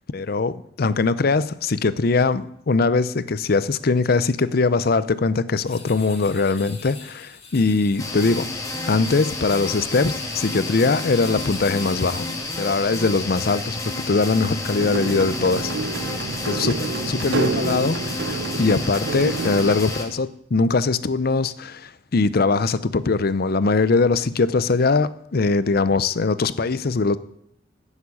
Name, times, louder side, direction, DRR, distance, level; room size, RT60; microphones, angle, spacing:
voice 1, 0.1-8.5 8.9-12.3 12.6-13.8 14.1-15.7 16.5-27.2, left 3 dB, 55° left, 0.6 m, -21 dB
sound 1, 5.7-13.0, left 5 dB, 35° left, 2.2 m, -44 dB
sound 2, 8.0-20.0, left 2 dB, 20° left, 1.9 m, -30 dB
sound 3, 14.8-19.8, right 4 dB, 80° right, 0.7 m, -28 dB
10.0 x 7.4 x 8.5 m
head